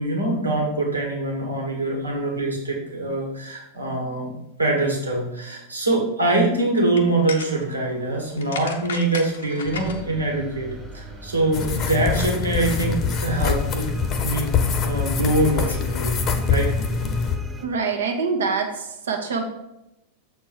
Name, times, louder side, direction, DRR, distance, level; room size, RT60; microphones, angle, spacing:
voice 1, 0.0-4.3 4.6-10.7 10.9-14.5 14.8-16.2 16.5-16.7, right 2 dB, 80° right, -2 dB, 1.7 m, -24 dB
sound 1, 6.8-12.1, left 5 dB, 65° left, 0.8 m, -38 dB
sound 2, 9.6-17.7, right 3 dB, 10° right, 0.6 m, -40 dB
sound 3, 11.5-17.4, left 6 dB, 30° left, 0.9 m, -24 dB
voice 2, 17.6-19.4, right 5 dB, 65° right, 3 dB, 1.1 m, -25 dB
7.4 x 4.4 x 4.7 m, 0.88 s
figure-of-eight pair, 90°, 0 cm